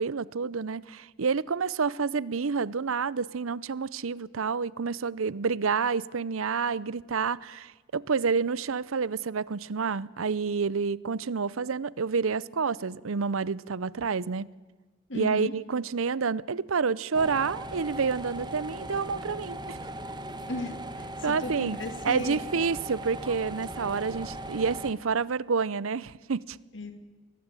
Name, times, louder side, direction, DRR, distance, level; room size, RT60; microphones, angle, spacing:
voice 1, 0.0-14.5 15.1-19.8 21.2-21.8 22.0-26.6, right 5 dB, 80° right, 0.6 m, -29 dB
voice 2, 15.1-15.5 20.5-22.4 26.7-27.0, left 1 dB, 60° left, 2.4 m, -35 dB
sound 1, 17.1-24.9, right 1 dB, 20° right, 1.4 m, -39 dB
24.5 x 19.0 x 9.0 m
head